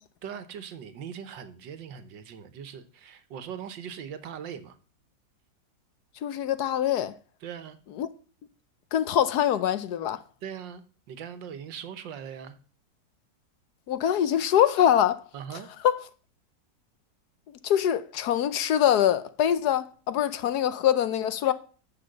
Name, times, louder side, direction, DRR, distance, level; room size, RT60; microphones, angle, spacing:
voice 1, 0.2-4.8 7.4-7.8 10.4-12.6 15.3-15.7 21.4-21.5, right 8 dB, 85° right, 1.7 m, -40 dB
voice 2, 6.2-7.1 8.0-8.1 8.9-10.2 13.9-15.2 15.8-16.0 17.5-21.5, left 10 dB, 70° left, 1.2 m, -24 dB
10.0 x 6.3 x 6.5 m
omnidirectional pair, 2.0 m